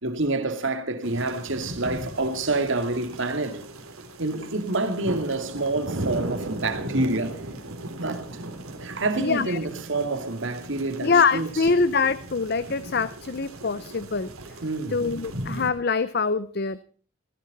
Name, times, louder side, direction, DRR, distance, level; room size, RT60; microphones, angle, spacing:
voice 1, 0.0-3.6 4.2-7.4 7.9-8.4 8.8-11.5 14.6-15.1, right 2 dB, 60° right, 2.3 m, -27 dB
sound 1, 1.0-15.7, right 1 dB, 85° right, 3.3 m, -37 dB
voice 2, 9.2-9.6 11.0-14.3 14.9-16.8, left 4 dB, 45° left, 0.6 m, -24 dB
17.5 x 15.5 x 4.1 m
head